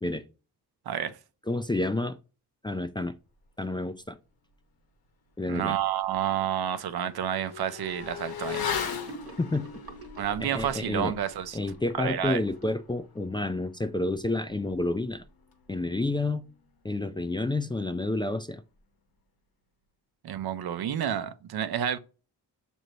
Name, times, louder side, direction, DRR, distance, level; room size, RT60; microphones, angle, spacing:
voice 1, 1.5-2.2 2.6-3.1 3.6-4.2 5.4-5.7 9.4-9.7 10.4-11.1 11.5-15.2 15.7-16.4 16.8-18.6, left 2 dB, 15° left, 0.3 m, -29 dB
Motorcycle / Accelerating revving vroom, 5.5-5.6 6.0-16.0 16.3-16.4, left 7 dB, 70° left, 0.9 m, -39 dB
voice 2, 5.5-8.7 10.2-11.6 12.0-12.4 20.2-22.0, right 10 dB, 75° right, 0.6 m, -30 dB
Gurgling / Sink (filling or washing), 8.9-13.3, right 2 dB, 35° right, 1.1 m, -47 dB
6.3 x 2.7 x 3.0 m
cardioid pair, 60°, 38 cm